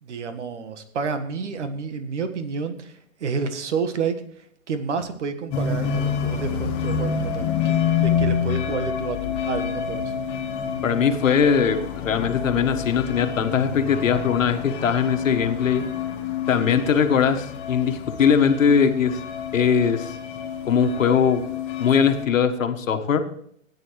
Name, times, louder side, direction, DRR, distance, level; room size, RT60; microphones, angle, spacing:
voice 1, 0.0-10.1, right 5 dB, 55° right, 9 dB, 1.6 m, -30 dB
sound 1, 5.5-22.2, left 7 dB, 15° left, 0.9 m, -28 dB
voice 2, 10.8-15.8 16.5-19.2 19.5-20.1 20.6-21.4 21.8-23.3, left 7 dB, 70° left, 7 dB, 1.5 m, -20 dB
15.5 x 9.5 x 3.2 m, 0.65 s
hypercardioid pair, 155°, 41 cm